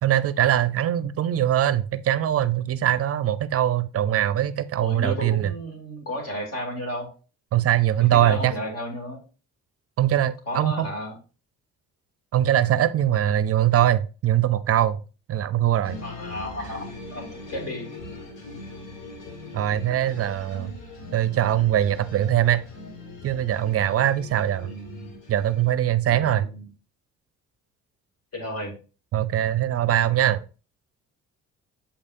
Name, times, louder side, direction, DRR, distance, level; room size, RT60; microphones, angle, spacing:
voice 1, 0.0-5.5 7.5-8.5 10.0-10.9 12.3-15.0 15.3-16.0 19.5-20.7 21.1-22.6 23.2-24.7 25.3-26.5 29.1-30.4, right 11 dB, 50° right, 0.5 m, -22 dB
voice 2, 4.8-7.1 8.1-9.2 10.5-11.1 16.0-16.9 17.1-17.9 24.6-25.1 26.0-26.7 28.3-28.8, equal, 55° left, 2.6 m, -33 dB
sound 1, 15.8-25.7, left 2 dB, 90° left, 1.6 m, -41 dB
6.9 x 5.4 x 2.5 m
cardioid pair, 90°, 30 cm